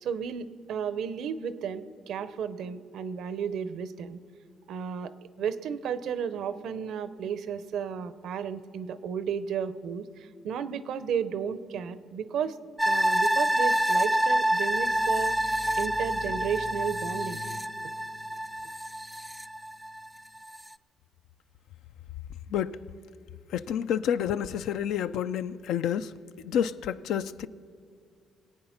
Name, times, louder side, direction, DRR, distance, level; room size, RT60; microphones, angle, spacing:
voice 1, 0.0-4.2 4.7-5.1 5.4-12.6 12.8-17.4, right 7 dB, 75° right, 0.7 m, -33 dB
sound 1, 12.8-20.1 20.5-20.6, right 1 dB, 5° right, 0.4 m, -27 dB
sound 2, 14.6-20.2, left 5 dB, 55° left, 0.8 m, -46 dB
voice 2, 23.5-26.1 26.4-27.5, left 9 dB, 85° left, 0.3 m, -29 dB
21.5 x 8.8 x 5.8 m
cardioid pair, 90°, 0 cm